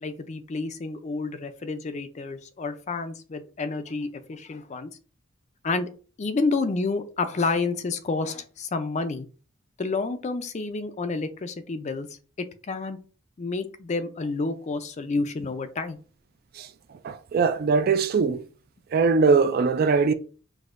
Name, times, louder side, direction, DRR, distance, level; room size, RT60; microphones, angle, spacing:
voice 1, 0.0-4.9 5.6-5.9 6.2-9.3 9.8-12.1 12.7-13.0 13.4-16.0, left 3 dB, 35° left, 0.4 m, -29 dB
voice 2, 16.5-18.4 18.9-20.1, right 4 dB, 45° right, 0.3 m, -22 dB
6.1 x 2.7 x 2.5 m
head